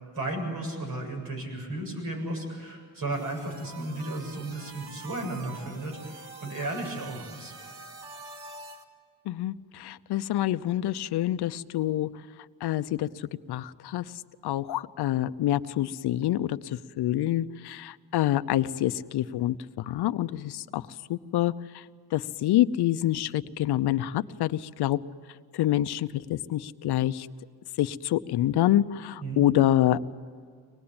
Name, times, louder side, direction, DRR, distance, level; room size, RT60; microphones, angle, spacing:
voice 1, 0.1-7.5 29.2-29.4, right 1 dB, 60° right, 2 dB, 7.6 m, -34 dB
sound 1, 3.1-8.8, right 4 dB, 80° right, 2.4 m, -45 dB
voice 2, 9.3-12.1 12.6-14.1 14.4-20.8 21.1-21.8 22.1-25.0 25.5-27.3 27.8-30.0, left 13 dB, 85° left, 11 dB, 0.8 m, -27 dB
24.5 x 19.5 x 8.8 m, 2.1 s
cardioid pair, 150°, 39 cm